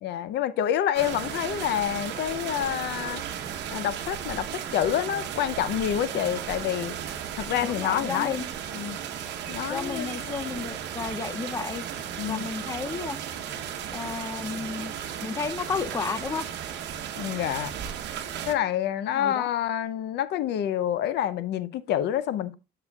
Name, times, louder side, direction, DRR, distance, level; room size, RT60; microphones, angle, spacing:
voice 1, 0.0-3.2 3.7-6.9 7.4-8.4 8.7-9.0 9.5-10.5 12.2-12.4 17.2-17.7 18.5-22.5, left 11 dB, 75° left, 0.5 m, -28 dB
sound 1, 0.9-18.5, right 9 dB, 80° right, 0.9 m, -35 dB
voice 2, 7.6-8.5 9.7-11.8 12.2-13.2 13.9-14.9 15.2-16.5 19.1-19.5, left 5 dB, 20° left, 0.5 m, -32 dB
9.7 x 6.8 x 2.3 m
cardioid pair, 135°, 18 cm